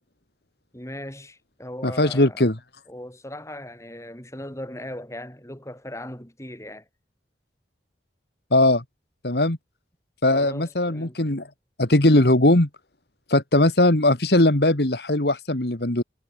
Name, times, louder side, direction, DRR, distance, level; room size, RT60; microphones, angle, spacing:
voice 1, 0.7-2.4 2.9-6.9 10.3-11.2, left 1 dB, 15° left, 5.2 m, -38 dB
voice 2, 1.8-2.5 8.5-8.8 9.2-9.6 10.2-11.5 11.8-12.7 13.3-16.0, left 1 dB, 60° left, 2.2 m, -19 dB
head